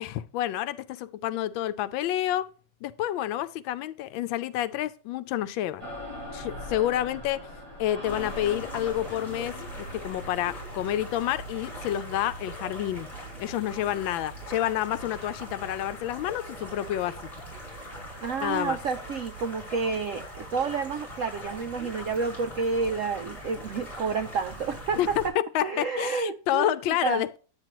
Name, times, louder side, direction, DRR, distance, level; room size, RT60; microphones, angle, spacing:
voice 1, 0.0-2.5 2.8-5.9 6.3-7.5 7.8-13.1 13.4-17.3 18.4-18.8 25.0-25.1 25.3-27.4, left 12 dB, 90° left, 1.4 m, -29 dB
sound 1, 5.8-11.6, left 1 dB, 45° right, 6.7 m, -41 dB
sound 2, 8.1-25.3, equal, 15° left, 6.2 m, -41 dB
voice 2, 18.2-25.3 25.6-27.2, right 4 dB, 75° right, 0.7 m, -30 dB
10.5 x 9.1 x 3.0 m
omnidirectional pair, 2.1 m